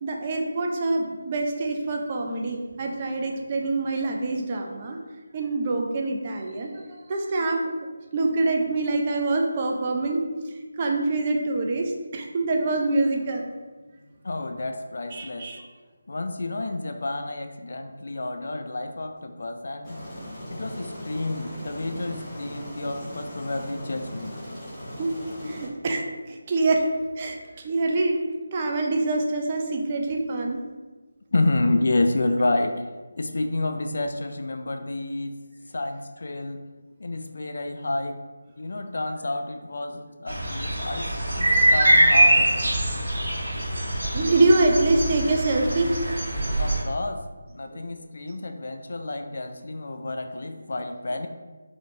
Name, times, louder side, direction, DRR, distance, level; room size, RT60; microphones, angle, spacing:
voice 1, 0.0-5.0 5.3-6.8 7.1-7.7 8.1-10.4 10.8-13.4 15.1-15.6 25.0-25.1 25.4-26.9 27.2-28.2 28.5-30.6 39.9-40.0 41.6-41.7 44.1-45.9 47.7-47.8, right 2 dB, 30° right, 1 dB, 0.4 m, -25 dB
voice 2, 14.2-15.5 16.1-20.0 20.5-24.4 31.3-32.7 33.2-35.3 35.7-36.6 37.0-38.2 38.6-41.1 41.4-42.7 46.6-47.2 47.5-51.3, left 2 dB, 55° left, 6 dB, 0.3 m, -29 dB
Aircraft, 19.8-25.6, equal, 15° left, 1.0 m, -38 dB
sound 1, 40.3-46.8, right 1 dB, 60° right, 1.2 m, -23 dB
4.0 x 3.0 x 2.7 m, 1.3 s
figure-of-eight pair, 155°, 0 cm